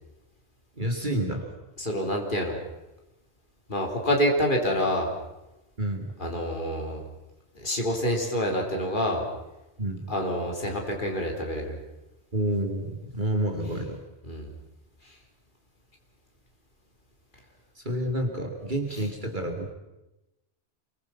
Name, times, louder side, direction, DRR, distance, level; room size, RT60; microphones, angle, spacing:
voice 1, 0.8-1.5 5.8-6.1 9.8-10.1 12.3-14.0 17.8-19.7, right 1 dB, 45° right, 3 dB, 2.8 m, -29 dB
voice 2, 1.8-2.6 3.7-5.1 6.2-7.0 7.6-9.2 10.1-11.8 14.3-14.5, equal, 45° left, 1 dB, 3.9 m, -27 dB
28.5 x 23.5 x 5.9 m, 0.99 s
omnidirectional pair, 1.1 m